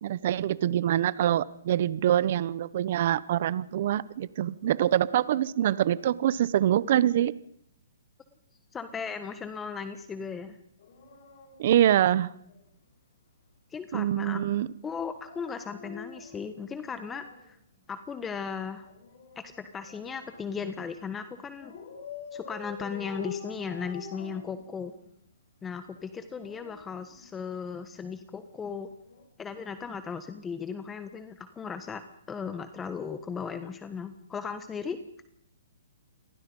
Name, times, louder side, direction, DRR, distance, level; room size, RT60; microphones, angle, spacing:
voice 1, 0.0-7.3 11.6-12.3 13.9-14.7, right 11 dB, 50° right, 19 dB, 1.0 m, -25 dB
voice 2, 8.7-10.6 13.7-14.4 14.8-17.6 17.9-18.9 19.3-21.7 22.3-24.9 25.6-28.9 29.4-32.0 32.3-35.0, left 6 dB, 10° left, 10 dB, 1.3 m, -37 dB
Dog, 10.8-12.7 15.1-17.5 18.8-20.4 21.6-25.1 26.1-27.8 29.0-29.2, left 6 dB, 55° left, 7.8 m, -46 dB
29.0 x 22.0 x 5.5 m, 0.70 s
hypercardioid pair, 150°, 0 cm